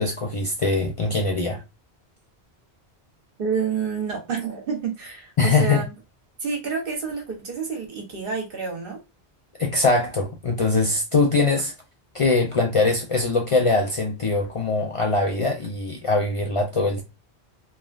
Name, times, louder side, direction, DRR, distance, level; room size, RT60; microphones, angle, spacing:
voice 1, 0.0-1.6 5.4-5.8 9.6-11.7 12.1-17.0, left 3 dB, 55° left, 0.3 m, -22 dB
voice 2, 3.4-5.8 6.4-9.0, right 5 dB, 60° right, 1.0 m, -28 dB
3.3 x 2.1 x 2.3 m
omnidirectional pair, 1.1 m